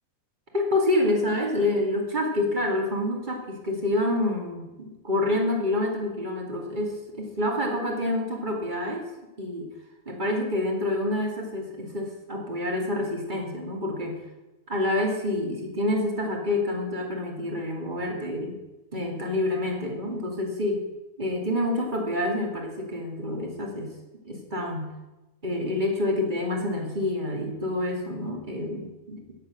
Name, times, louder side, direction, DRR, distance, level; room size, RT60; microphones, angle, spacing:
voice 1, 0.5-9.0 9.4-9.7 10.1-14.2 14.7-18.6 18.9-20.8 21.2-23.9 24.2-24.9 25.4-29.2, left 1 dB, 30° right, 1 dB, 2.7 m, -27 dB
17.0 x 7.5 x 7.4 m, 1.1 s
omnidirectional pair, 1.6 m